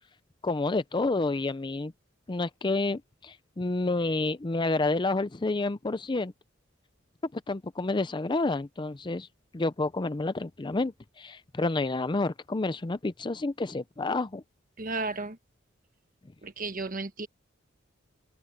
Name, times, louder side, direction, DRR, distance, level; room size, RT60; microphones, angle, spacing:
voice 1, 0.4-1.9 2.3-6.3 7.3-9.3 9.5-14.4, left 2 dB, 25° left, 0.5 m, -29 dB
voice 2, 14.8-15.4 16.4-17.3, right 3 dB, 45° right, 1.4 m, -33 dB
head